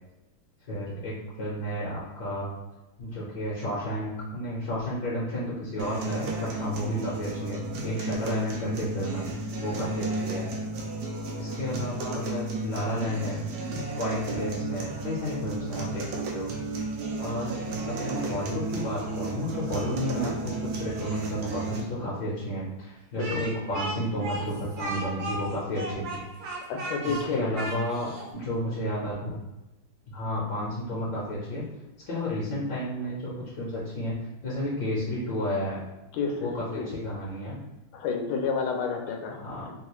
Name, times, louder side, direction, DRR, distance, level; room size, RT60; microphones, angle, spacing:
voice 1, 0.7-2.5 3.0-9.3 9.6-10.4 11.4-13.4 13.9-16.1 16.3-16.5 17.2-17.6 17.9-26.2 27.0-29.3 30.1-31.6 32.1-34.1 34.4-35.8 36.4-37.6 39.4-39.7, equal, 65° left, -7 dB, 1.3 m, -32 dB
sound 1, 5.8-21.8, right 2 dB, 85° right, 0.8 m, -33 dB
voice 2, 23.2-23.5 26.7-27.7 36.1-36.9 37.9-39.4 39.7-39.8, left 5 dB, 85° left, 2 dB, 1.5 m, -30 dB
Speech, 23.2-28.3, right 2 dB, 65° right, 1.1 m, -35 dB
3.5 x 2.3 x 3.0 m, 1.0 s
omnidirectional pair, 2.3 m